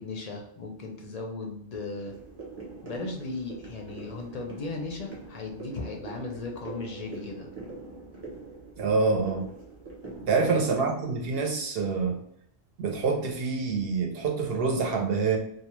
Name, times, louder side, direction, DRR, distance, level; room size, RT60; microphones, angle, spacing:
voice 1, 0.0-2.1 2.8-7.5 10.4-10.8, left 3 dB, 55° left, 1 dB, 0.4 m, -37 dB
sound 1, 2.0-10.5, right 3 dB, 25° right, 0.7 m, -43 dB
voice 2, 8.8-9.4 10.3-12.2 12.8-15.4, right 4 dB, 70° right, 2 dB, 0.8 m, -26 dB
2.3 x 2.2 x 2.9 m, 0.71 s
omnidirectional pair, 1.1 m